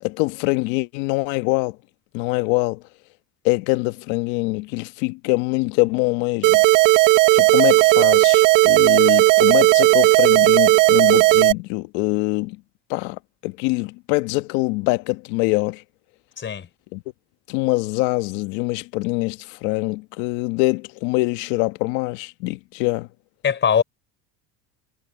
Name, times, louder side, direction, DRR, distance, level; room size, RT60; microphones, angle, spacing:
voice 1, 0.0-1.8 2.1-2.8 3.4-6.6 6.9-7.1 7.3-12.6 12.9-15.8 16.9-17.0 17.5-23.1, left 23 dB, 75° left, 1.5 m, -24 dB
sound 1, 6.4-11.5, right 21 dB, 65° right, 1.3 m, -14 dB
voice 2, 16.4-16.7 23.4-23.8, left 7 dB, 35° left, 4.2 m, -20 dB
supercardioid pair, 115°, 35 cm